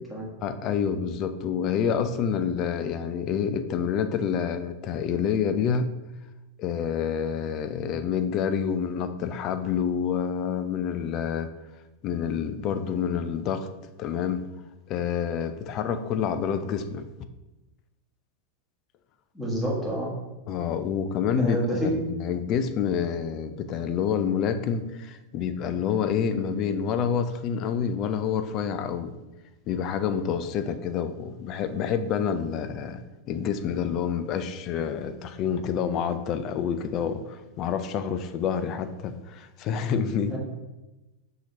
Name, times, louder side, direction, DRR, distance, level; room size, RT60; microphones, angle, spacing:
voice 1, 0.4-5.9 6.6-11.5 12.0-13.7 14.0-14.4 14.9-17.0 20.5-29.2 29.7-33.0 33.3-40.4, left 7 dB, 35° left, 0.3 m, -28 dB
voice 2, 19.3-20.1 21.4-21.9 40.3-40.4, right 1 dB, 5° left, 1.3 m, -28 dB
5.6 x 2.9 x 2.8 m
figure-of-eight pair, 90°, 0 cm